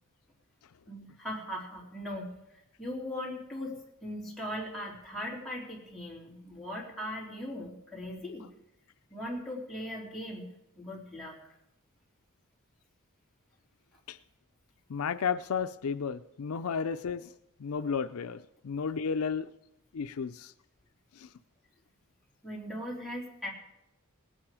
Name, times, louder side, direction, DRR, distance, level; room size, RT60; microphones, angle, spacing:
voice 1, 0.9-8.5 9.1-10.5 10.8-11.4 22.4-23.5, equal, ahead, -5 dB, 3.7 m, -39 dB
voice 2, 14.9-17.3 17.6-19.5 19.9-20.5 21.2-21.3, left 6 dB, 75° left, 11 dB, 0.5 m, -33 dB
19.0 x 8.9 x 4.9 m, 0.87 s
head